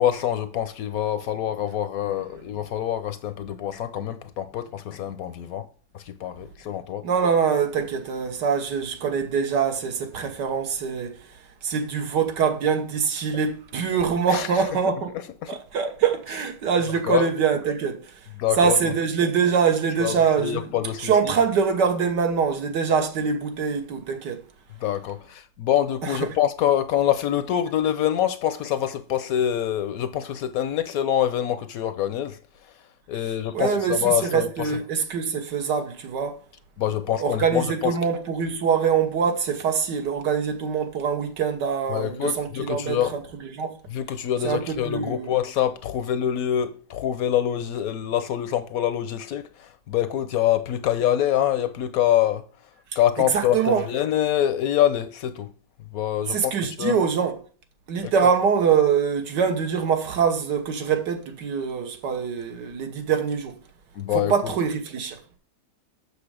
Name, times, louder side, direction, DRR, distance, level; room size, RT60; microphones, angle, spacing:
voice 1, 0.0-5.7 5.9-7.1 14.3-14.7 15.4-15.6 17.0-17.3 18.4-18.9 20.0-21.3 24.8-32.4 32.6-32.7 33.1-34.7 36.8-38.0 41.9-43.2 43.9-52.4 53.0-55.5 55.9-57.0 58.0-58.3 63.9-64.5, left 11 dB, 70° left, 0.9 m, -25 dB
voice 2, 7.0-11.1 11.6-15.1 15.5-18.0 18.6-20.7 21.0-24.4 26.0-26.1 33.5-36.4 37.2-43.0 43.4-43.7 44.4-45.4 53.3-53.8 56.3-57.3 57.9-63.5 64.3-65.2, right 6 dB, 80° right, 1.8 m, -24 dB
6.8 x 6.5 x 4.9 m
omnidirectional pair, 1.8 m